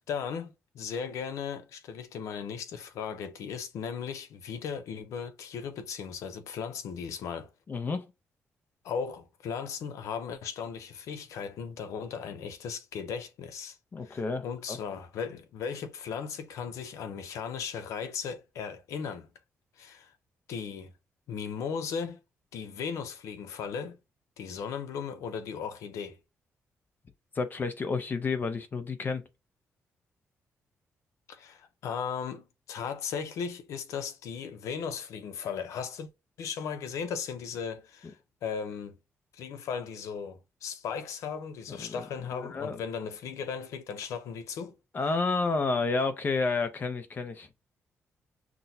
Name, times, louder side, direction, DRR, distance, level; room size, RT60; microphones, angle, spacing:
voice 1, 0.0-7.5 8.8-13.8 14.0-19.3 19.8-20.1 20.5-20.9 21.3-22.2 22.5-24.0 24.4-26.2 31.3-36.1 36.4-39.0 39.3-44.7, left 6 dB, 90° left, 0.6 m, -37 dB
voice 2, 7.7-8.0 13.9-14.8 27.3-29.2 41.7-42.0 42.3-42.8 44.9-47.5, left 4 dB, 40° left, 0.6 m, -30 dB
6.0 x 2.2 x 2.7 m
cardioid pair, 105°, 5 cm